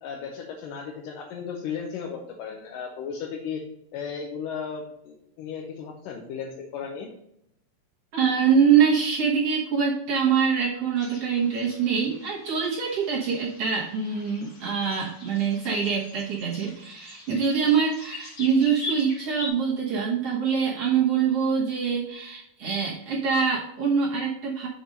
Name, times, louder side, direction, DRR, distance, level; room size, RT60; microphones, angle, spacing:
voice 1, 0.0-3.6 3.9-7.1, left 6 dB, 75° left, -1 dB, 2.4 m, -35 dB
voice 2, 8.1-24.7, right 6 dB, 65° right, -4 dB, 1.6 m, -24 dB
sound 1, 11.0-19.5, left 2 dB, 45° left, 2.3 m, -42 dB
6.3 x 4.3 x 5.1 m, 0.77 s
omnidirectional pair, 4.1 m